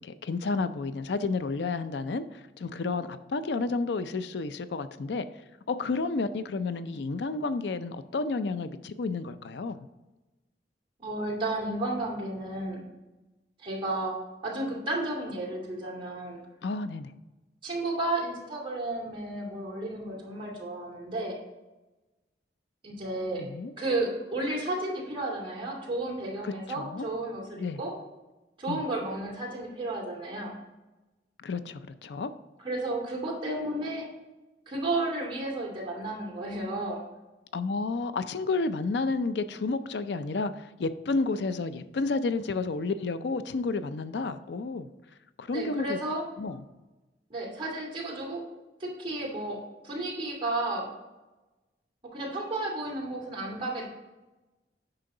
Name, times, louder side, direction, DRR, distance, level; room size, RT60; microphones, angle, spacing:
voice 1, 0.0-5.3 5.7-9.8 16.6-17.1 23.4-23.7 26.4-27.1 27.6-27.8 28.7-28.8 31.4-32.3 37.5-44.9 45.4-46.0 46.4-46.6, left 3 dB, 75° left, 12 dB, 0.4 m, -31 dB
voice 2, 11.0-12.8 13.6-14.1 14.4-16.4 17.6-21.4 22.8-23.4 23.8-27.9 28.6-30.5 32.6-34.1 34.7-37.0 45.5-46.2 47.3-48.4 48.8-49.6 49.8-50.9 52.1-53.9, right 2 dB, 30° right, -3 dB, 2.6 m, -32 dB
8.9 x 5.7 x 3.8 m, 1.1 s
head